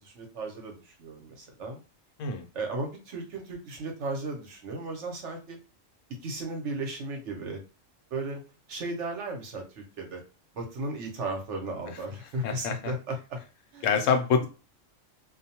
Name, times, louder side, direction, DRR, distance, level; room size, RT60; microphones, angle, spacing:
voice 1, 0.0-1.8 2.5-5.6 6.2-7.6 8.1-8.4 8.7-10.2 10.5-13.4 13.7-13.9, right 2 dB, 70° right, 2 dB, 1.1 m, -35 dB
voice 2, 12.4-12.9 13.8-14.5, left 6 dB, 80° left, 5 dB, 1.0 m, -26 dB
2.5 x 2.1 x 2.8 m, 0.33 s
omnidirectional pair, 1.3 m